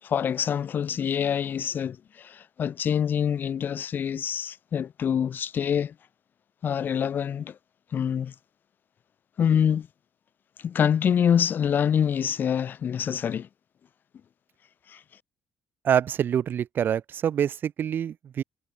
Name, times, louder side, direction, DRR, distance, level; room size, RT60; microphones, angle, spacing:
voice 1, 0.0-5.9 6.6-7.6 7.9-8.3 9.4-9.9 10.6-13.5 14.9-15.0, left 8 dB, 55° left, 6.2 m, -26 dB
voice 2, 15.8-18.4, right 9 dB, 60° right, 7.5 m, -26 dB
cardioid pair, 80°, 4 cm